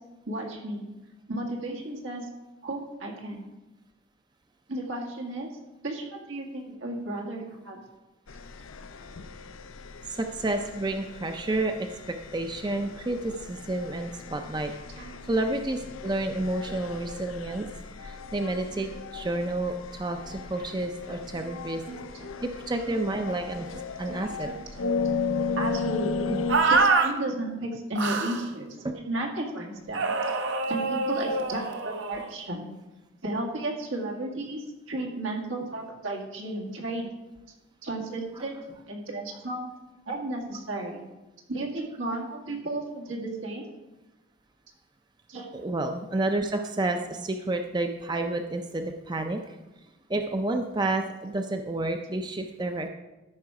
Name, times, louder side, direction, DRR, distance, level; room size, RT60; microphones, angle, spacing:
voice 1, 0.3-0.9 1.3-2.3 2.6-3.4 4.7-5.5 5.8-7.8 14.2-14.4 14.9-15.3 16.7-16.9 20.3-20.6 21.4-21.6 21.9-22.3 22.6-22.7 24.1-25.2 25.6-30.1 30.7-32.7 33.2-37.1 37.8-38.6 38.9-39.7 40.1-41.0 41.5-43.6 45.3-45.6, right 1 dB, 85° right, 0 dB, 2.0 m, -34 dB
sound 1, 8.3-26.9, left 4 dB, 85° left, 0.6 m, -36 dB
voice 2, 10.1-14.7 15.3-17.7 18.0-21.8 22.4-23.7 24.0-24.5 26.3-26.4 28.8-28.9 45.5-49.6 50.1-52.9, right 2 dB, 20° right, 5 dB, 0.5 m, -30 dB
sound 2, 26.5-27.1 28.0-28.5 29.9-32.3, right 3 dB, 65° right, 0.8 m, -25 dB
13.0 x 5.7 x 4.8 m, 1.0 s
head